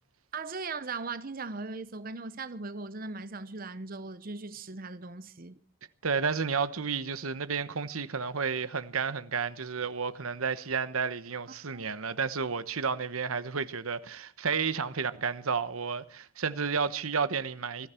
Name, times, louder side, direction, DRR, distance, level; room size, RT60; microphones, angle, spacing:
voice 1, 0.3-5.6 11.7-11.9, right 3 dB, 40° right, 0.8 m, -38 dB
voice 2, 6.0-17.9, right 5 dB, 85° right, 1.1 m, -31 dB
20.5 x 15.0 x 4.4 m
head